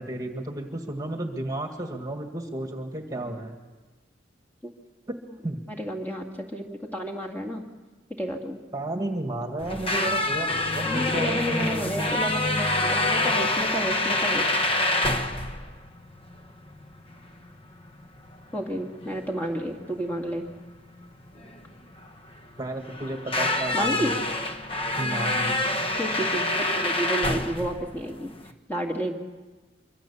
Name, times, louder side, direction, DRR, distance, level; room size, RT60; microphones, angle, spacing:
voice 1, 0.0-3.5 5.1-5.2 5.4-5.6 8.7-11.9 22.6-24.2 24.9-25.6, right 1 dB, 20° right, 4 dB, 1.8 m, -32 dB
voice 2, 5.7-7.6 8.2-8.6 10.8-14.5 18.5-20.5 23.7-24.1 26.0-28.3 28.7-29.1, equal, 10° left, 0 dB, 2.2 m, -31 dB
sound 1, 9.6-28.5, left 2 dB, 30° left, 1.3 m, -27 dB
25.0 x 24.5 x 7.1 m, 1.3 s
head